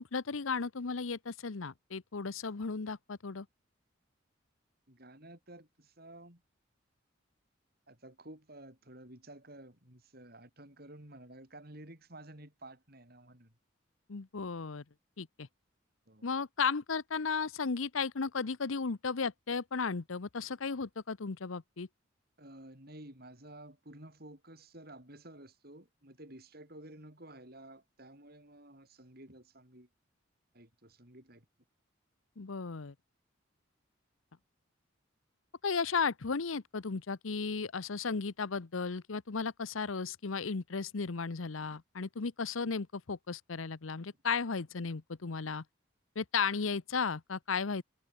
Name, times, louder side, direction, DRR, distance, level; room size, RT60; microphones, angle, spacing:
voice 1, 0.0-3.5 14.1-14.8 15.2-15.5 16.2-21.9 32.4-32.9 35.6-45.6 46.2-47.8, left 5 dB, 85° left, 0.8 m, -35 dB
voice 2, 4.9-6.4 7.9-13.5 16.1-16.3 22.4-29.9 30.5-31.5, right 1 dB, 50° right, 6.9 m, -52 dB
head